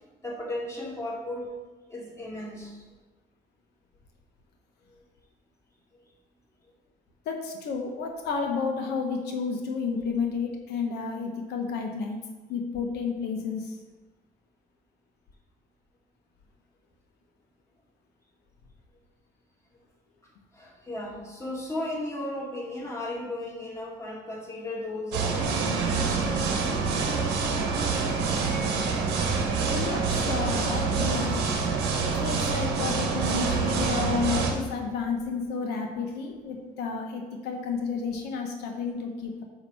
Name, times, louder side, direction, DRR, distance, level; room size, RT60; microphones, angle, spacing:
voice 1, 0.2-1.5 1.9-2.8 4.9-5.0 20.5-25.6, left 1 dB, 15° left, -3 dB, 1.9 m, -35 dB
voice 2, 7.3-12.2 12.5-13.8 29.6-31.4 32.1-39.4, left 5 dB, 80° left, 2 dB, 0.9 m, -31 dB
sound 1, 25.1-34.5, right 4 dB, 90° right, 1.2 m, -26 dB
8.6 x 2.9 x 5.5 m, 1.3 s
cardioid pair, 110°, 17 cm